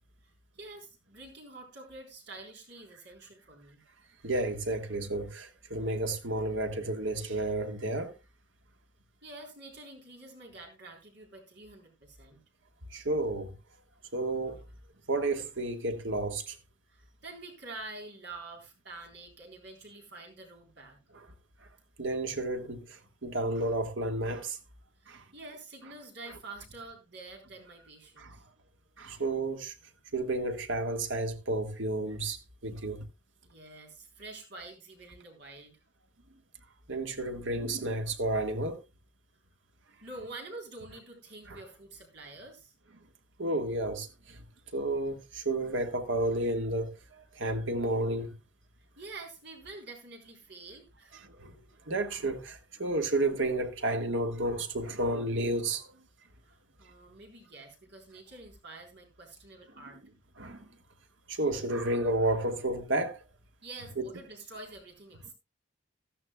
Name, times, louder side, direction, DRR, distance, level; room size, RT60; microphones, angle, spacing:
voice 1, 0.2-3.8 9.2-12.4 16.9-21.0 25.0-28.4 33.4-35.8 40.0-42.7 49.0-51.2 56.4-60.0 63.6-65.3, right 2 dB, 60° right, 3.9 m, -47 dB
voice 2, 4.2-8.1 12.9-13.6 14.1-14.6 15.1-16.6 22.0-24.6 25.1-25.2 28.2-28.4 29.0-29.7 30.1-33.0 36.9-38.8 41.5-41.6 43.4-44.4 44.7-48.3 51.2-51.5 51.9-55.9 60.4-60.6 61.3-63.2 64.0-64.1, right 2 dB, 80° right, 1.6 m, -31 dB
14.0 x 13.5 x 2.3 m
head